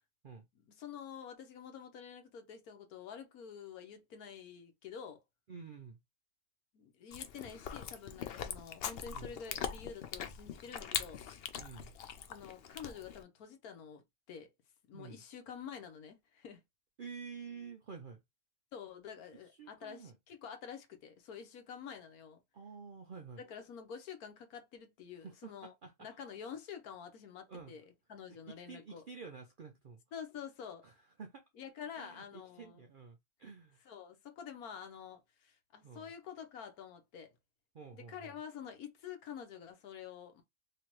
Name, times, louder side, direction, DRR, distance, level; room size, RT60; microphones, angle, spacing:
voice 1, 0.5-5.2 6.7-11.2 12.3-14.5 14.9-16.6 18.7-22.4 23.4-25.7 26.0-29.0 30.1-30.8 31.6-32.8 33.8-37.4 37.9-40.4, left 7 dB, 85° left, 1.4 m, -48 dB
voice 2, 5.5-6.0 9.1-9.3 11.6-11.9 14.9-15.2 17.0-18.2 19.6-20.1 22.5-23.4 25.2-26.1 27.5-27.8 28.3-30.0 30.8-30.9 31.2-31.4 32.0-33.8 35.8-36.1 37.7-38.4, right 5 dB, 70° right, 0.5 m, -50 dB
Chewing mastication, 7.1-13.2, left 8 dB, 70° left, 0.6 m, -42 dB
3.3 x 2.9 x 3.0 m
omnidirectional pair, 1.5 m